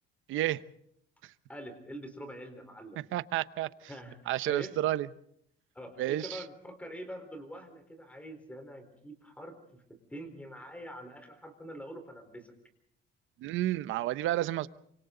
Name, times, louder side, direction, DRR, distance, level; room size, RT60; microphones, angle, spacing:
voice 1, 0.3-0.6 3.1-3.7 4.3-5.1 6.0-6.4 13.4-14.7, right 14 dB, 75° right, 0.9 m, -30 dB
voice 2, 1.5-3.0 3.9-4.8 5.7-12.5, equal, 5° left, 4.2 m, -45 dB
28.5 x 25.5 x 3.9 m
cardioid pair, 170°, 21 cm